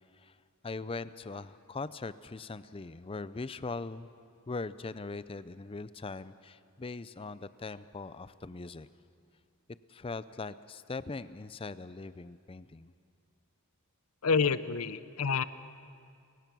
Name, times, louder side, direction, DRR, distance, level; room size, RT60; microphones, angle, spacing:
voice 1, 0.6-4.1 4.5-8.9 9.9-12.9, left 3 dB, 25° left, 15 dB, 0.4 m, -40 dB
voice 2, 14.2-15.4, left 5 dB, 80° left, 15 dB, 0.7 m, -28 dB
29.5 x 16.0 x 6.1 m, 2.3 s
head